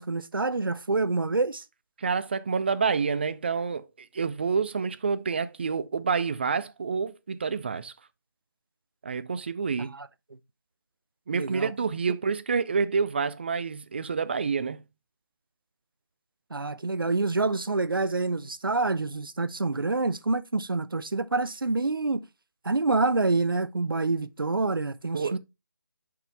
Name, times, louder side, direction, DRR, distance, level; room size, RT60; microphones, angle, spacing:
voice 1, 0.0-1.6 9.8-10.1 11.3-11.7 16.5-22.3 22.6-25.4, right 3 dB, 80° right, 0.6 m, -27 dB
voice 2, 2.0-7.9 9.0-10.0 11.3-14.8 25.1-25.4, right 5 dB, 30° right, 0.4 m, -28 dB
5.6 x 5.4 x 3.3 m
figure-of-eight pair, 155°, 11 cm